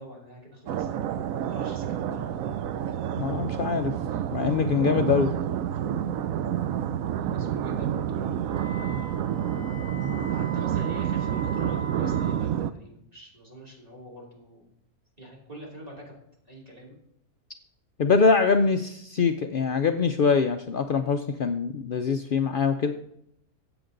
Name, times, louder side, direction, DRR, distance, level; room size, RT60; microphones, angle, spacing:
voice 1, 0.0-2.7 7.3-9.2 10.3-14.7 15.2-16.1 16.4-17.0, right 1 dB, 25° right, -2 dB, 3.2 m, -45 dB
sound 1, 0.7-12.7, right 9 dB, 70° right, 1.0 m, -29 dB
voice 2, 3.2-3.9 4.3-5.3 18.0-22.9, left 5 dB, 75° left, 7 dB, 0.4 m, -23 dB
Wind instrument woodwind instrument, 8.4-12.4, right 4 dB, 10° left, 4.6 m, -40 dB
14.0 x 8.1 x 3.8 m, 0.75 s
omnidirectional pair, 1.6 m